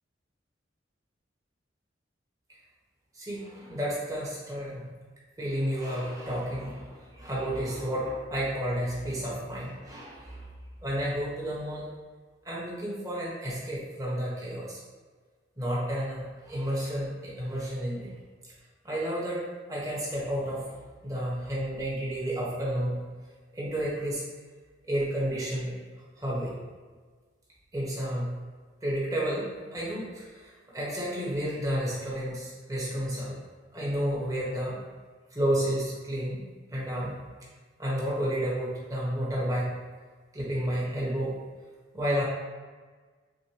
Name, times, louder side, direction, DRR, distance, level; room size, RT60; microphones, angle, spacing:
voice 1, 3.2-4.9 5.4-10.4 10.8-11.8 12.4-14.8 15.6-18.1 18.8-20.7 21.0-23.0 23.5-24.2 24.9-25.7 26.2-26.6 27.7-28.3 28.8-33.4 33.7-34.8 35.3-36.4 36.7-37.2 37.8-39.7 40.3-41.4 41.9-42.2, equal, 20° right, -6 dB, 1.1 m, -31 dB
6.3 x 2.1 x 3.0 m, 1.4 s
head